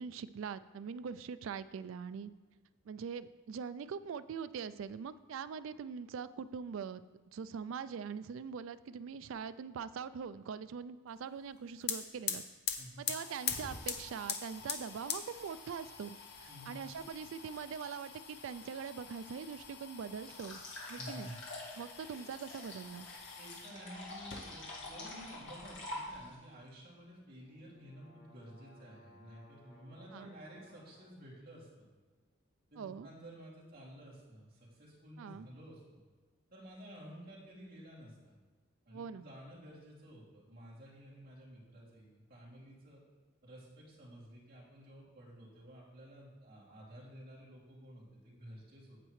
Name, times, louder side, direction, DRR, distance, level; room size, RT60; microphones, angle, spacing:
voice 1, 0.0-2.3 2.9-7.0 7.3-12.4 13.0-20.6 20.9-21.3 21.8-23.1 30.1-30.3 32.8-33.1 35.2-35.5 38.9-39.2, right 6 dB, 75° right, 14 dB, 0.3 m, -43 dB
sound 1, 11.5-11.6 11.8-23.7 24.2-24.9 25.2-26.2, left 7 dB, 50° left, 0.7 m, -43 dB
voice 2, 16.5-16.8 21.0-21.4 22.1-22.2 23.4-31.9 32.7-36.0 36.5-38.3 38.8-43.0 43.4-49.0, equal, 45° right, -7 dB, 2.6 m, -52 dB
sound 2, 20.2-26.4, left 2 dB, 65° left, 2.0 m, -46 dB
sound 3, 27.2-31.1, equal, 25° left, 2.6 m, -62 dB
8.7 x 7.9 x 3.2 m, 1.3 s
head